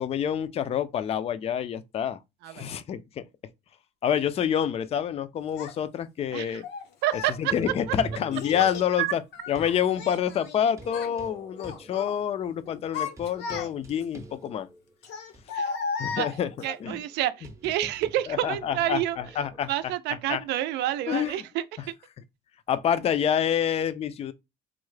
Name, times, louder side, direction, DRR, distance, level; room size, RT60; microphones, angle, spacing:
voice 1, 0.0-2.2 2.5-3.2 4.0-6.7 7.4-9.2 9.5-14.7 16.0-16.5 16.8-17.0 18.3-19.7 20.3-20.4 21.1-21.3 22.7-24.3, left 9 dB, 35° left, 0.3 m, -27 dB
Child speech kid speaking, 5.6-5.7 6.6-7.4 8.3-8.9 9.3-10.6 10.8-11.2 11.6-12.2 12.7-14.0 15.0-16.8, left 5 dB, 80° left, 0.7 m, -35 dB
voice 2, 7.0-7.5 7.9-8.0 9.0-9.1 15.5-15.7 16.2-16.3 16.6-19.2 19.7-21.9, right 13 dB, 85° right, 0.4 m, -29 dB
sound 1, 7.5-9.8 10.5-14.9 15.3-15.4 16.1-19.6, right 2 dB, 15° right, 0.6 m, -45 dB
3.6 x 2.1 x 3.1 m
cardioid pair, 110°, 17 cm